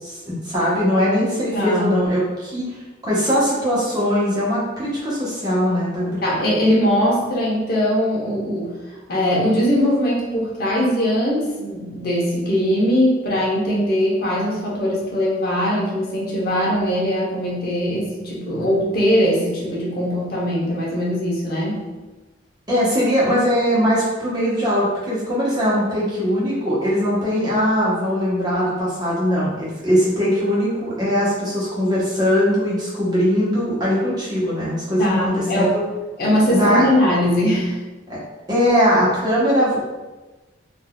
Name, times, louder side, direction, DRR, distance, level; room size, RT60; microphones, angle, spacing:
voice 1, 0.0-2.8 3.0-6.2 22.7-35.8 36.5-36.9 38.1-38.2 38.5-39.8, equal, 20° right, -8 dB, 1.0 m, -20 dB
voice 2, 1.5-2.0 6.2-8.7 9.1-21.8 35.0-35.7 36.2-37.8, equal, 55° left, -5 dB, 0.9 m, -20 dB
3.7 x 2.7 x 2.3 m, 1.2 s
head